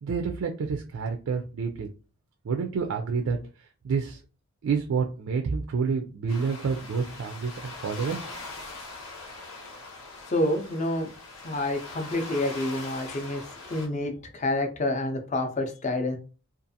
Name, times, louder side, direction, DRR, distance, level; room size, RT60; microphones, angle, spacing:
voice 1, 0.0-1.9 2.4-4.2 4.6-8.3, right 5 dB, 70° right, 3 dB, 0.3 m, -29 dB
sound 1, 6.3-13.9, left 3 dB, 85° left, 0.9 m, -42 dB
voice 2, 10.3-11.1 11.4-13.4 13.7-16.2, left 1 dB, 35° left, 5 dB, 0.5 m, -28 dB
2.5 x 2.4 x 2.6 m, 0.35 s
head